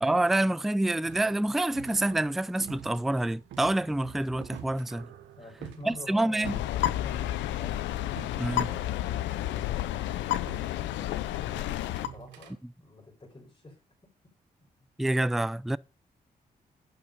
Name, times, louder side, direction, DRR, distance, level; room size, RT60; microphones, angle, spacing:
voice 1, 0.0-5.1 5.9-6.5 8.4-8.7 15.0-15.8, right 1 dB, ahead, 0.4 m, -27 dB
sound 1, 1.0-7.5 7.9-9.2 9.6-9.8 10.4-12.5, right 9 dB, 85° right, 1.2 m, -48 dB
voice 2, 5.4-7.9 8.5-11.7 12.1-13.8, left 2 dB, 25° left, 5.0 m, -48 dB
sound 2, 6.4-12.1, left 13 dB, 85° left, 0.6 m, -31 dB
10.5 x 6.9 x 5.4 m
supercardioid pair, 45°, 19 cm